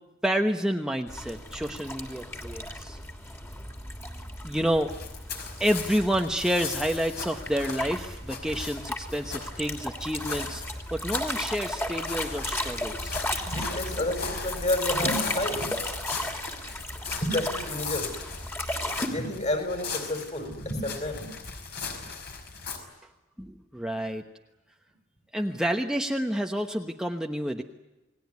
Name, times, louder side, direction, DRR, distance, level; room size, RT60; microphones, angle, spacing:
voice 1, 0.2-3.0 4.4-4.9 5.6-10.6 10.9-13.2 23.4-24.2 25.3-27.6, equal, 5° right, 3 dB, 1.1 m, -29 dB
sound 1, 1.1-19.1, left 1 dB, 10° left, 3.1 m, -35 dB
sound 2, 4.9-22.8, left 5 dB, 55° left, 5.3 m, -38 dB
voice 2, 13.4-15.7 17.2-18.1 19.1-21.3, left 1 dB, 35° left, 6 dB, 5.9 m, -30 dB
29.5 x 19.5 x 9.6 m, 1.1 s
head